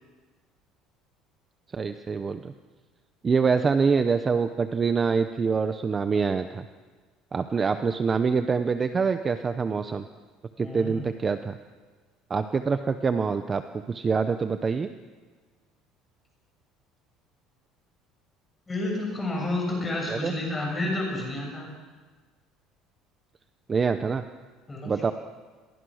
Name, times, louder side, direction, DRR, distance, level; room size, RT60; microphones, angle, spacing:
voice 1, 1.7-2.5 3.2-6.6 7.3-10.0 10.6-11.6 12.3-13.6 13.9-14.9 20.1-20.4 23.7-24.2 24.8-25.1, right 5 dB, 20° right, 9 dB, 0.7 m, -25 dB
voice 2, 10.6-11.1 18.7-21.7 24.7-24.9, left 2 dB, 10° left, 0 dB, 7.1 m, -30 dB
29.5 x 23.0 x 6.4 m, 1.4 s
cardioid pair, 175°, 0 cm